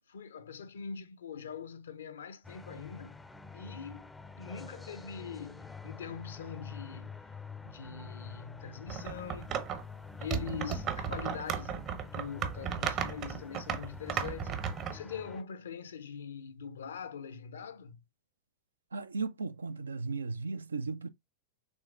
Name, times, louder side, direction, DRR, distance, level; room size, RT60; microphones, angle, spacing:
voice 1, 0.1-3.2 3.5-7.2 7.6-9.7 10.2-18.0, left 6 dB, 65° left, 0.6 m, -43 dB
sound 1, 2.4-15.4, left 5 dB, 5° left, 0.5 m, -47 dB
sound 2, 8.9-9.8 10.2-15.0, right 8 dB, 35° right, 0.7 m, -35 dB
voice 2, 18.9-21.1, right 4 dB, 75° right, 0.4 m, -36 dB
6.3 x 3.4 x 2.4 m
figure-of-eight pair, 90°, 0 cm